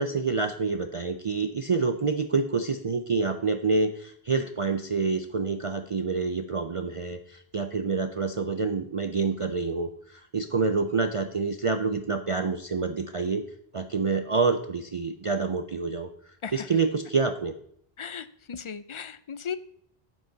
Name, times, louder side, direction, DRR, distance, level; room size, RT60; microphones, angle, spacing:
voice 1, 0.0-13.4 13.7-16.1 16.5-17.5, right 4 dB, 40° right, 8 dB, 0.5 m, -27 dB
voice 2, 16.4-16.8 18.0-19.6, left 7 dB, 50° left, 15 dB, 0.3 m, -37 dB
9.6 x 7.8 x 3.9 m, 0.66 s
omnidirectional pair, 1.1 m